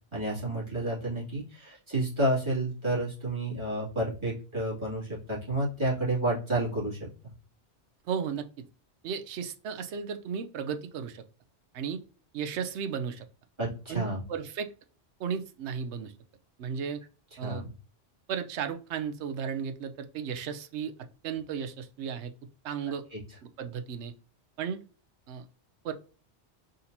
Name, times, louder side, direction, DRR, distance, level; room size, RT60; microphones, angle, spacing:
voice 1, 0.1-7.0 13.6-14.2 17.4-17.7 23.1-23.2, right 1 dB, 25° right, -8 dB, 2.4 m, -30 dB
voice 2, 8.1-8.4 9.0-11.2 11.7-12.0 12.3-13.2 13.9-14.7 15.2-16.1 16.6-17.0 17.4-17.7 18.3-20.9 21.2-22.3 22.6-23.0 23.4-24.1 24.6-24.8 25.3-25.4 25.8-25.9, right 7 dB, 80° right, 8 dB, 0.9 m, -34 dB
4.2 x 3.9 x 2.6 m, 0.37 s
omnidirectional pair, 1.2 m